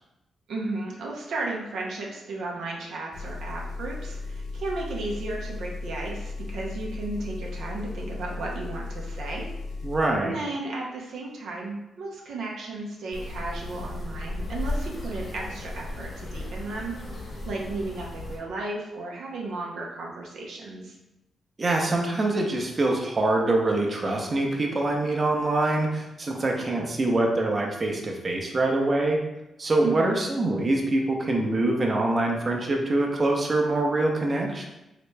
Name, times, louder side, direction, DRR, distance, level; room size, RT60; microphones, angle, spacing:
voice 1, 0.5-9.5 10.2-16.9 17.5-21.0 29.8-30.1, right 2 dB, 80° right, -2 dB, 0.6 m, -34 dB
Engine, 3.1-10.0, left 3 dB, 85° left, 0.5 m, -36 dB
voice 2, 9.8-10.4 21.6-29.2 29.6-34.7, right 2 dB, 40° right, 0 dB, 0.7 m, -24 dB
sound 1, 13.1-18.4, left 2 dB, 60° left, 1.3 m, -35 dB
3.1 x 2.9 x 3.3 m, 0.93 s
cardioid pair, 60°, 0 cm